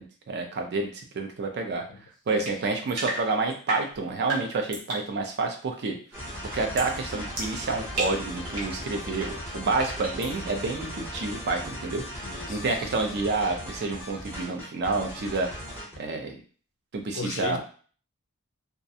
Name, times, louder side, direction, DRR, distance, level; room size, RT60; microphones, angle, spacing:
voice 1, 0.0-1.9 2.3-6.0 6.5-12.0 12.5-15.5 16.0-16.4 16.9-17.6, right 3 dB, 50° right, 3 dB, 0.5 m, -29 dB
sound 1, 2.4-5.1 6.8-7.0 7.4-8.8 9.8-10.3, right 2 dB, 85° right, 0.9 m, -34 dB
sound 2, 6.1-16.0, equal, 10° right, 0.8 m, -38 dB
voice 2, 12.2-12.8 17.0-17.6, left 4 dB, 60° left, 7 dB, 0.4 m, -36 dB
2.4 x 2.1 x 2.7 m, 0.41 s
head